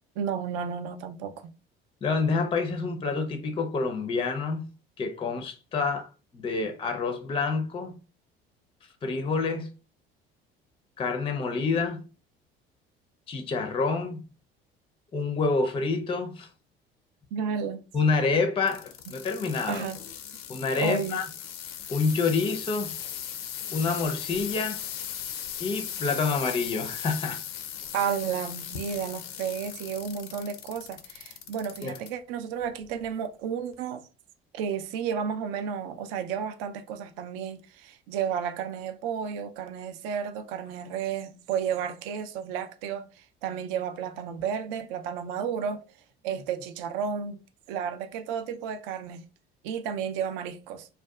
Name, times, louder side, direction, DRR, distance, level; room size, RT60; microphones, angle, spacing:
voice 1, 0.2-1.3 17.3-17.8 19.7-20.0 20.8-21.2 27.9-34.0 34.5-45.8 46.2-47.4 47.7-49.2 49.6-50.9, right 7 dB, 65° right, 0.5 m, -32 dB
voice 2, 2.0-4.6 5.0-8.0 9.0-9.7 11.0-12.0 13.3-14.2 15.1-16.5 17.9-19.9 20.5-21.3 21.9-22.9 23.7-24.8 25.6-27.4 31.8-32.0, left 4 dB, 20° left, 0.4 m, -27 dB
sound 1, 18.6-32.1 32.6-33.1 33.7-33.8, left 9 dB, 75° left, 0.5 m, -38 dB
2.6 x 2.2 x 2.3 m
hypercardioid pair, 60°, 30 cm